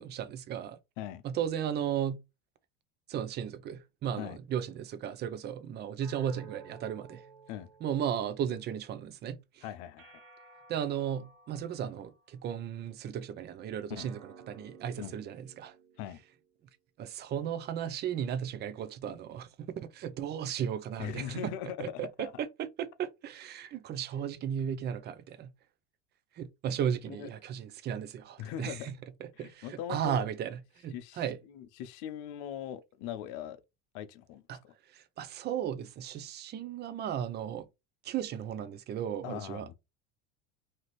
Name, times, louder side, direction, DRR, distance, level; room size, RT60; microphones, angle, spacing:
voice 1, 0.0-0.8 1.2-2.2 3.1-7.2 7.8-9.6 10.7-15.7 17.0-21.5 21.8-25.5 26.4-28.9 29.4-31.4 34.5-34.6 34.9-37.7 38.0-39.7, right 9 dB, 30° right, 0.4 m, -35 dB
sound 1, 6.0-8.6 10.0-12.5 13.9-16.6, right 5 dB, 85° right, 0.8 m, -55 dB
voice 2, 9.6-10.2 13.9-14.1 15.0-15.1 16.0-16.2 21.0-22.3 27.1-27.3 28.4-28.9 29.4-30.2 30.9-33.6 33.9-34.7 39.2-39.7, left 10 dB, 65° left, 0.6 m, -40 dB
2.8 x 2.4 x 3.0 m
supercardioid pair, 100°, 38 cm